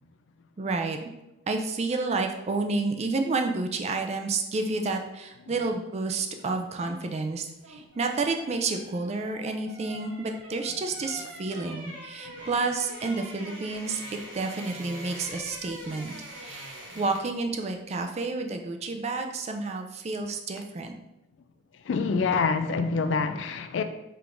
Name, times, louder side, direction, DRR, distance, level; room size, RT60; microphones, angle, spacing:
voice 1, 0.6-1.1 1.5-21.0, right 3 dB, 35° right, 4 dB, 0.4 m, -30 dB
sound 1, 7.4-17.4 17.7-17.9, right 1 dB, 75° right, 1.0 m, -43 dB
voice 2, 21.8-23.8, left 4 dB, 70° left, 8 dB, 0.4 m, -26 dB
4.7 x 3.5 x 2.5 m, 0.91 s
head